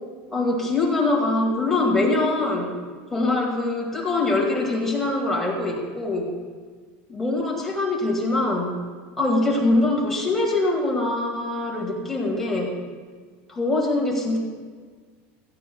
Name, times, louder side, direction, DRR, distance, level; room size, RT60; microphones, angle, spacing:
voice 1, 0.3-2.7 3.1-6.4 7.1-8.7 9.2-12.8 13.5-14.4, left 2 dB, 5° left, -2 dB, 1.9 m, -23 dB
16.0 x 13.0 x 2.3 m, 1.5 s
supercardioid pair, 150°, 6 cm